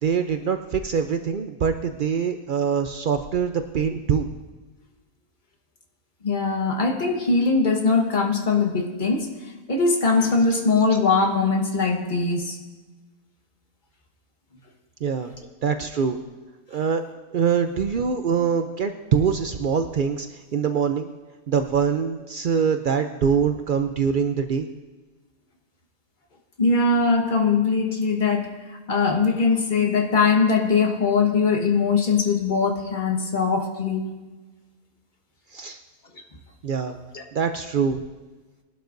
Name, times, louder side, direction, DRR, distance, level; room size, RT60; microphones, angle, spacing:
voice 1, 0.0-4.3 10.5-10.6 15.0-15.4 15.6-16.2 16.7-17.0 17.3-21.1 21.5-24.7 35.5-35.8 36.6-37.0 37.3-38.0, right 6 dB, 90° right, 7 dB, 0.4 m, -24 dB
voice 2, 6.2-9.3 9.7-12.6 26.6-34.1 37.1-37.2, left 4 dB, 35° left, 2 dB, 1.4 m, -21 dB
21.0 x 12.0 x 2.6 m, 1.3 s
omnidirectional pair, 1.6 m